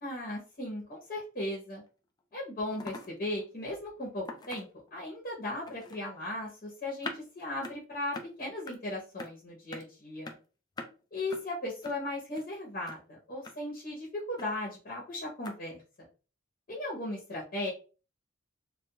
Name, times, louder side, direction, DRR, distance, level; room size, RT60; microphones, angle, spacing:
voice 1, 0.0-1.8 2.3-10.3 11.1-15.8 16.7-17.7, left 1 dB, 45° left, -3 dB, 0.8 m, -37 dB
sound 1, 1.9-2.0 2.2-2.3 2.7-3.1 3.4-3.5 4.3-4.9 5.7-6.0 7.0-7.2 7.6-7.8 8.1-8.3 8.7-8.8 9.2-9.3 9.7-9.8 10.2-10.4 10.8-10.9 11.3-11.4 11.8-12.0 12.3-12.5 12.9-13.0 13.4-13.5 14.4-14.5 15.4-15.6, left 3 dB, 20° left, 0.3 m, -42 dB
2.7 x 2.3 x 2.2 m, 0.35 s
head